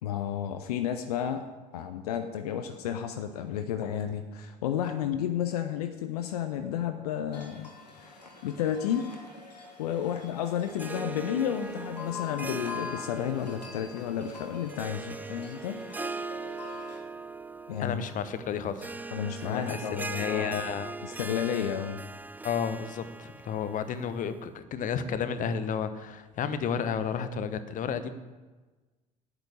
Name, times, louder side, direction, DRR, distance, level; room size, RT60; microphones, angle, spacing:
voice 1, 0.0-7.7 8.0-9.1 9.8-15.8 17.7-18.0 19.1-20.6 21.0-22.0, left 9 dB, 70° left, 8 dB, 0.7 m, -32 dB
sound 1, 7.3-17.0, left 6 dB, 85° left, 1.4 m, -45 dB
Harp, 10.7-24.4, right 3 dB, 10° right, 0.4 m, -40 dB
voice 2, 17.8-18.9 19.5-19.8 20.1-20.9 22.4-28.1, left 7 dB, 40° left, 11 dB, 1.0 m, -32 dB
8.9 x 8.0 x 8.4 m, 1.2 s
figure-of-eight pair, 60°, 21 cm